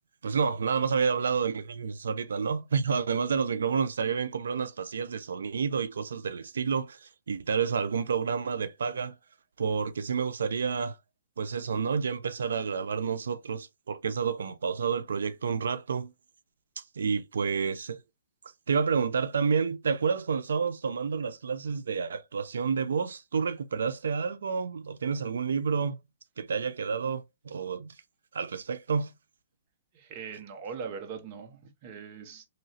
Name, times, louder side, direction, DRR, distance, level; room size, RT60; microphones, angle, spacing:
voice 1, 0.2-9.1 9.6-11.0 11.4-16.1 16.8-18.0 18.7-26.0 26.4-27.9 28.3-29.1, right 6 dB, 90° right, 0.4 m, -29 dB
voice 2, 29.9-32.5, right 6 dB, 30° right, 0.7 m, -41 dB
3.0 x 2.7 x 2.7 m
hypercardioid pair, 170°, 0 cm